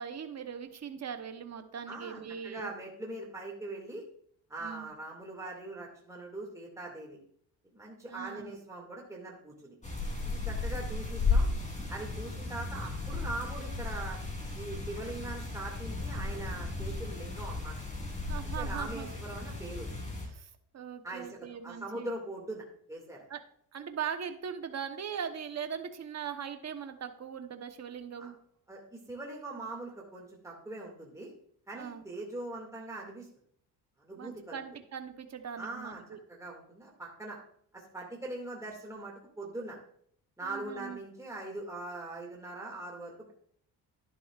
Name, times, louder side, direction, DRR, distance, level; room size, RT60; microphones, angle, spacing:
voice 1, 0.0-2.7 4.6-4.9 8.1-8.6 18.2-19.1 20.3-22.1 23.3-23.4 23.7-28.4 31.7-32.0 34.2-36.2 40.4-41.0, right 7 dB, 35° right, 7 dB, 1.0 m, -40 dB
voice 2, 1.9-4.0 4.5-7.2 7.7-9.8 10.2-11.5 11.9-14.2 14.5-17.7 18.6-19.9 21.0-21.4 21.6-23.2 28.2-28.3 28.7-31.3 31.7-33.3 34.0-34.6 35.6-36.0 36.3-37.4 37.7-39.8 40.4-43.3, right 2 dB, 5° right, -2 dB, 2.2 m, -41 dB
sound 1, 9.8-20.3, left 3 dB, 15° left, 3.5 m, -34 dB
11.0 x 11.0 x 2.5 m, 0.64 s
cardioid pair, 105°, 44 cm